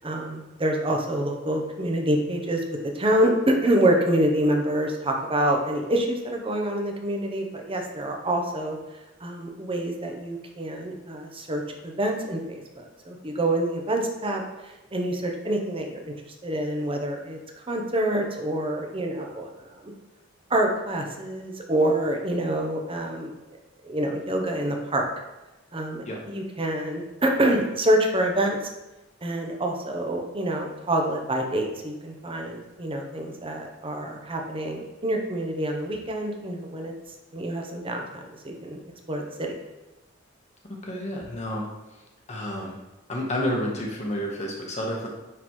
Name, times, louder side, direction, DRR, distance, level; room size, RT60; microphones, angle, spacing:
voice 1, 0.0-8.8 9.2-16.1 16.4-19.9 20.5-23.6 23.8-25.1 25.7-28.6 29.2-36.9 37.3-39.5, right 1 dB, 30° right, 2 dB, 0.9 m, -26 dB
voice 2, 40.8-41.7 41.9-42.0 42.3-42.8 43.1-45.1, equal, 35° left, -1 dB, 1.2 m, -30 dB
9.2 x 3.9 x 3.2 m, 1.1 s
head